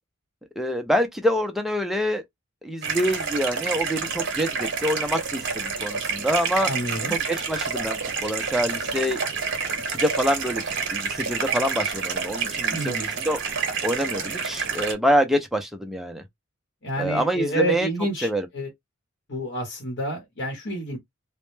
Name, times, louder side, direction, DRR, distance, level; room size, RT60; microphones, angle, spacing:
voice 1, 0.6-2.2 2.6-6.7 7.1-9.2 9.9-13.4 13.8-16.2 17.0-17.9 18.2-18.5, equal, ahead, 0.4 m, -26 dB
sound 1, 2.8-14.9, right 5 dB, 60° right, 0.8 m, -28 dB
voice 2, 6.7-7.2 12.7-13.1 16.8-18.7 19.3-21.0, right 1 dB, 60° left, 0.9 m, -29 dB
2.1 x 2.1 x 3.0 m
head